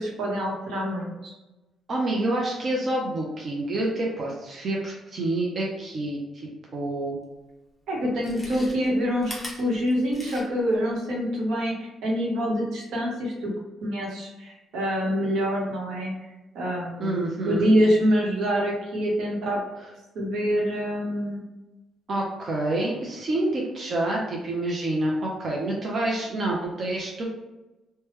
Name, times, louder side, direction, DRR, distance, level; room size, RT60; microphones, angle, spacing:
voice 1, 0.0-1.3 7.9-13.5 13.8-16.1 16.5-19.6 20.1-21.4, equal, 80° right, -2 dB, 0.9 m, -26 dB
voice 2, 1.9-7.2 17.0-17.7 22.1-27.2, right 2 dB, 40° right, -2 dB, 0.5 m, -28 dB
Chewing mastication, 7.3-7.4 8.1-10.7 11.1-11.2, left 1 dB, 10° left, 0.8 m, -40 dB
3.2 x 2.2 x 3.1 m, 1.0 s
cardioid pair, 140°, 0 cm